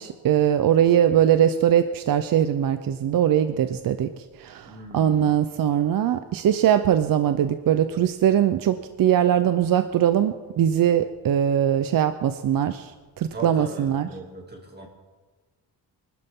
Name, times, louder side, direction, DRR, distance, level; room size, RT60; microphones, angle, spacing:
voice 1, 0.0-4.1 4.4-12.9 13.2-14.1, right 10 dB, 55° right, 10 dB, 0.7 m, -21 dB
voice 2, 4.7-5.4 13.2-14.9, right 2 dB, 25° right, 0 dB, 2.6 m, -39 dB
24.5 x 12.5 x 3.7 m, 1.3 s
wide cardioid pair, 180°, 41 cm